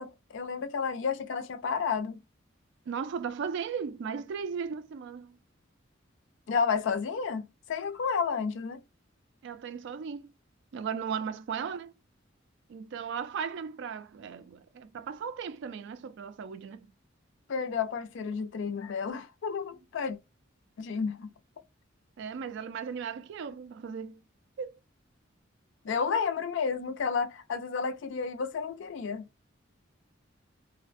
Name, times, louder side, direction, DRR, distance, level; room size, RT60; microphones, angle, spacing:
voice 1, 0.0-2.2 6.5-8.8 17.5-20.2 20.8-21.3 25.8-29.3, left 5 dB, 65° left, 0.4 m, -31 dB
voice 2, 2.9-5.4 9.4-10.3 10.7-11.9 12.7-16.9 22.2-24.2 24.6-24.7, right 6 dB, 65° right, 0.3 m, -36 dB
2.3 x 2.1 x 2.4 m
head